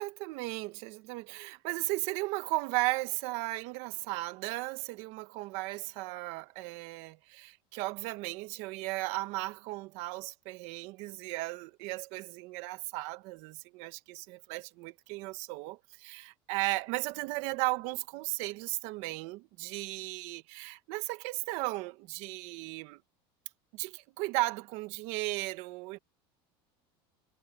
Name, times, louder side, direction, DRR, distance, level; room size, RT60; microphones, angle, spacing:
voice 1, 0.0-23.0 23.7-26.0, right 21 dB, 60° right, 1.2 m, -36 dB
cardioid pair, 155°, 12 cm